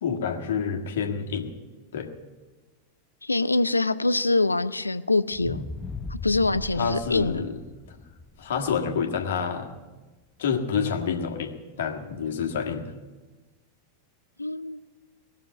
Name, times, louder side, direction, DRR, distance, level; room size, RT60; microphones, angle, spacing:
voice 1, 0.0-1.5 1.9-2.1 6.8-7.6 8.4-9.7 10.4-11.5 11.8-12.9, left 6 dB, 60° left, 3 dB, 1.7 m, -28 dB
voice 2, 3.2-5.7 6.1-7.5 14.4-14.8, left 2 dB, 80° left, 15 dB, 0.5 m, -24 dB
sound 1, 5.3-9.6 10.1-10.2, left 3 dB, 10° left, 0.7 m, -38 dB
19.0 x 6.9 x 9.2 m, 1.2 s
figure-of-eight pair, 90°, 0 cm